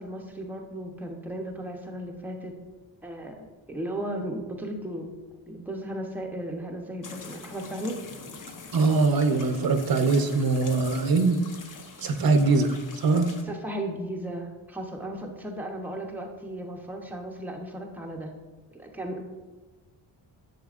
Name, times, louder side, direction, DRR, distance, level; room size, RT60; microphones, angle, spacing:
voice 1, 0.0-2.5 3.0-5.1 5.5-8.0 13.4-18.3 18.7-19.2, right 1 dB, 5° right, 1 dB, 0.7 m, -35 dB
sound 1, 7.0-13.4, left 4 dB, 40° left, 0.8 m, -44 dB
voice 2, 8.7-11.4 12.0-13.3, right 3 dB, 50° right, 7 dB, 0.8 m, -22 dB
10.5 x 7.1 x 2.4 m, 1.3 s
wide cardioid pair, 155°, 48 cm